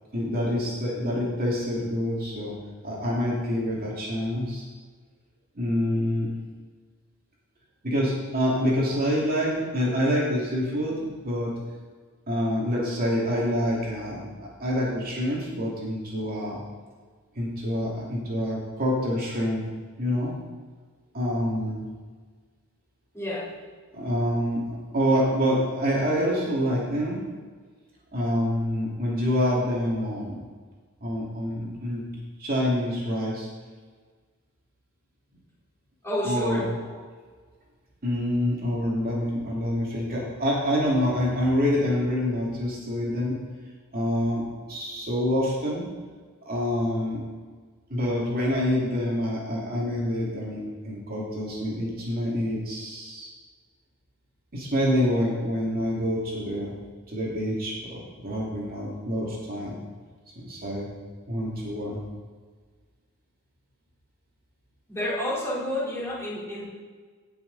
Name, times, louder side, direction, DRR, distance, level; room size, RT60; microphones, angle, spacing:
voice 1, 0.1-2.5 2.8-4.6 5.5-6.3 7.8-11.5 12.3-16.6 17.4-19.6 20.0-20.3 21.1-21.9 23.9-27.2 28.1-30.4 31.0-32.0 32.4-33.5 36.2-36.7 38.0-43.4 43.9-44.4 44.7-45.8 46.5-47.2 47.9-53.3 54.5-56.7 57.1-59.8 60.4-60.9 61.3-62.0, equal, 45° right, -4 dB, 2.5 m, -26 dB
voice 2, 23.1-23.4 36.0-37.0 64.9-66.7, left 1 dB, 15° left, -8 dB, 3.8 m, -30 dB
17.0 x 6.2 x 4.0 m, 1.5 s
head